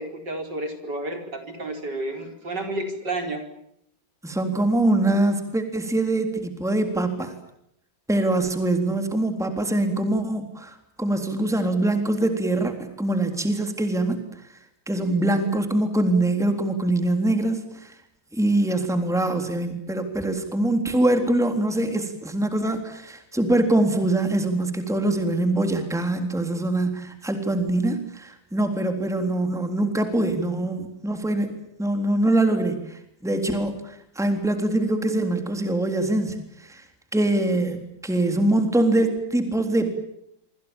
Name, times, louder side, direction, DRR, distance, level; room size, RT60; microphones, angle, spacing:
voice 1, 0.0-3.4 15.0-15.1, right 2 dB, 60° right, 5 dB, 5.2 m, -31 dB
voice 2, 4.2-7.3 8.1-14.2 14.5-14.6 14.9-18.0 18.3-31.5 31.8-36.8 37.1-39.9, right 1 dB, ahead, 6 dB, 3.5 m, -23 dB
26.5 x 26.0 x 7.2 m, 0.76 s
omnidirectional pair, 2.1 m